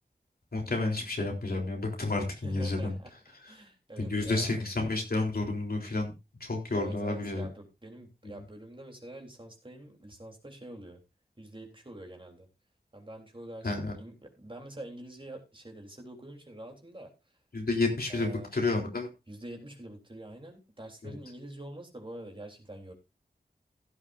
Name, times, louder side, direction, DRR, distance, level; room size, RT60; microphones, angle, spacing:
voice 1, 0.5-2.9 3.4-3.5 4.0-6.1 6.4-7.5 8.2-8.4 13.6-13.9 17.5-19.1 21.0-21.2, left 2 dB, 70° left, 1 dB, 3.7 m, -30 dB
voice 2, 2.4-3.1 3.4-4.5 6.8-11.0 11.4-12.5 12.9-17.1 18.1-18.5 19.3-22.9, right 1 dB, 30° right, 2 dB, 3.4 m, -45 dB
16.0 x 9.9 x 2.6 m, 0.26 s
wide cardioid pair, 70°, 16 cm